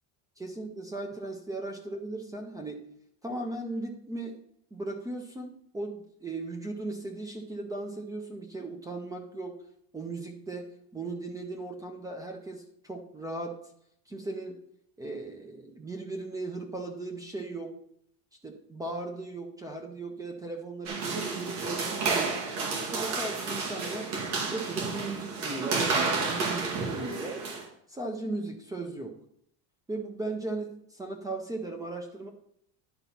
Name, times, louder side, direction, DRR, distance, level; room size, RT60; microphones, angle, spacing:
voice 1, 0.4-2.8 3.2-4.4 4.7-9.6 9.9-10.7 10.9-13.6 14.1-14.6 15.0-17.7 18.4-22.4 22.9-24.1 24.5-27.4 27.9-29.2 29.9-32.3, right 2 dB, 10° right, 3 dB, 0.4 m, -37 dB
sound 1, 20.9-27.6, right 4 dB, 55° right, 2.2 m, -31 dB
11.0 x 4.0 x 5.7 m, 0.70 s
cardioid pair, 180°, 46 cm